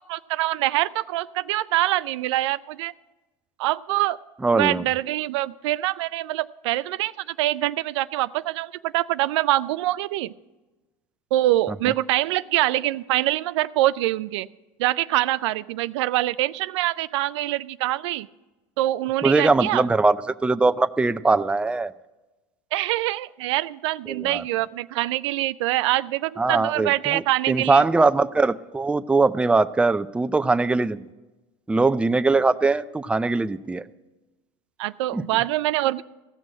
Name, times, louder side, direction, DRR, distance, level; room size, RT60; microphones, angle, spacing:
voice 1, 0.1-2.9 3.6-4.2 4.5-10.3 11.3-14.5 14.8-18.3 18.8-19.9 22.7-27.8 34.8-36.0, right 16 dB, 85° right, 16 dB, 0.4 m, -24 dB
voice 2, 4.4-4.8 19.2-20.2 20.4-21.9 24.1-24.4 26.4-31.0 31.7-33.8 35.1-35.2, right 3 dB, 10° right, 12 dB, 0.4 m, -21 dB
15.5 x 6.2 x 8.5 m, 1.1 s
supercardioid pair, 100°, 14 cm